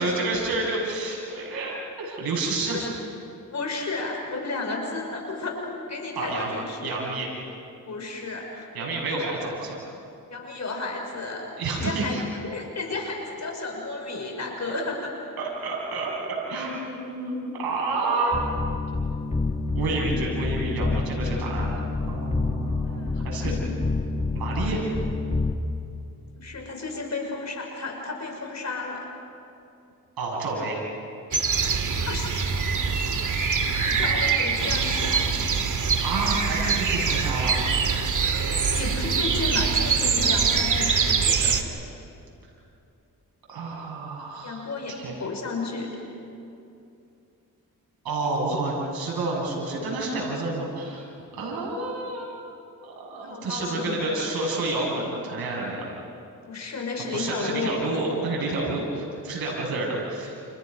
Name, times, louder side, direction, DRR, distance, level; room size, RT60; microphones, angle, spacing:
voice 1, 0.0-2.8 6.2-6.5 6.8-7.3 8.7-9.9 11.6-12.2 15.4-16.1 16.5-18.4 19.7-23.5 24.3-24.9 30.2-30.8 36.0-37.6 43.5-45.1 48.0-51.1 51.3-52.3 52.8-55.9 57.1-60.3, right 2 dB, 80° right, -3 dB, 7.0 m, -29 dB
voice 2, 3.5-5.6 5.9-7.0 7.9-8.7 10.3-11.5 11.7-12.2 12.4-15.1 22.8-23.2 23.4-23.6 26.4-29.1 32.0-32.7 33.8-35.3 38.5-41.6 44.4-44.9 45.2-46.0 53.2-54.2 56.5-57.8, left 3 dB, 50° left, 1 dB, 5.6 m, -32 dB
sound 1, 18.3-25.5, left 3 dB, 20° left, 1.6 m, -28 dB
sound 2, 31.3-41.6, right 5 dB, 55° right, 2.2 m, -24 dB
30.0 x 28.5 x 5.5 m, 2.7 s
cardioid pair, 65°, 36 cm